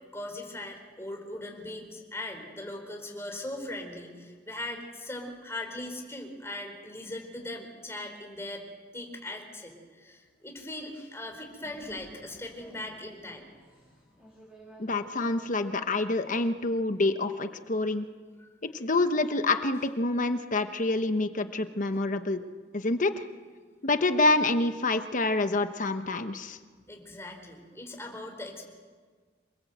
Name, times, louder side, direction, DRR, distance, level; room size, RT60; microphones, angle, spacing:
voice 1, 0.1-8.6 8.9-13.4 18.4-18.5 26.9-28.6, left 1 dB, 15° left, 2 dB, 4.5 m, -39 dB
sound 1, 11.6-17.1, equal, 5° right, 6.8 m, -52 dB
voice 2, 14.8-18.1 18.7-22.4 22.7-23.2 23.8-26.6, left 2 dB, 45° left, 9 dB, 1.0 m, -27 dB
27.5 x 20.5 x 8.0 m, 1.5 s
head